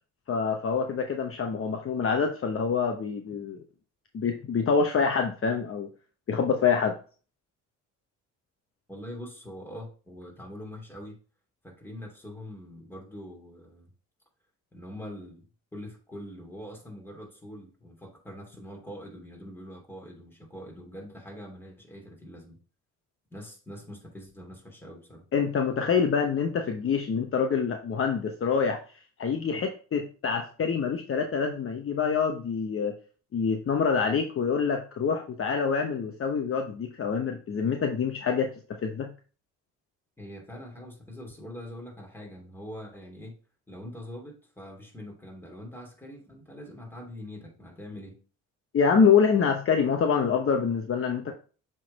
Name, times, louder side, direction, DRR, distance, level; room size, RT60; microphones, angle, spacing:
voice 1, 0.3-3.6 4.1-5.9 6.3-6.9 25.3-28.8 29.2-33.0 33.3-38.5 38.8-39.1 48.7-51.3, left 6 dB, 40° left, 4 dB, 0.9 m, -26 dB
voice 2, 8.9-11.2 11.6-13.9 14.7-15.4 15.7-22.6 23.3-25.2 40.2-43.4 43.7-48.2, equal, 5° left, 0 dB, 2.8 m, -43 dB
7.4 x 3.9 x 4.0 m, 0.37 s
cardioid pair, 80°, 32 cm